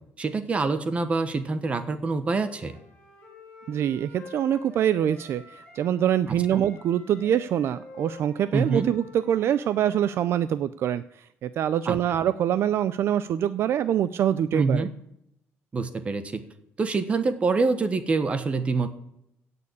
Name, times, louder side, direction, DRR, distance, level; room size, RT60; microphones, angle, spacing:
voice 1, 0.2-2.7 6.3-6.6 8.5-8.9 11.9-12.0 14.5-14.9 15.7-16.4 16.8-18.9, right 4 dB, 25° right, 11 dB, 1.2 m, -26 dB
Wind instrument woodwind instrument, 2.3-6.0 6.2-10.2, left 3 dB, 10° left, 5.9 m, -48 dB
voice 2, 3.7-14.9, right 10 dB, 50° right, 15 dB, 0.5 m, -25 dB
17.0 x 6.9 x 8.4 m, 0.80 s
cardioid pair, 170°, 5 cm